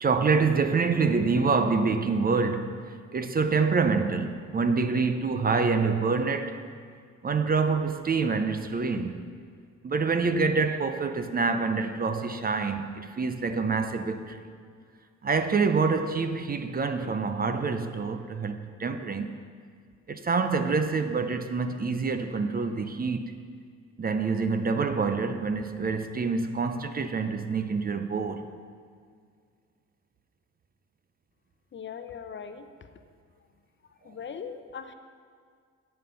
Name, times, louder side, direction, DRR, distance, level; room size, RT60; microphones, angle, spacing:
voice 1, 0.0-2.8 3.1-6.6 7.2-9.3 9.8-14.4 15.2-19.4 20.1-23.3 24.0-28.5, right 4 dB, 30° right, 0.6 m, -26 dB
voice 2, 31.7-32.7 34.0-34.9, left 7 dB, 40° left, 0.7 m, -39 dB
9.2 x 7.7 x 5.7 m
cardioid pair, 90°, 30 cm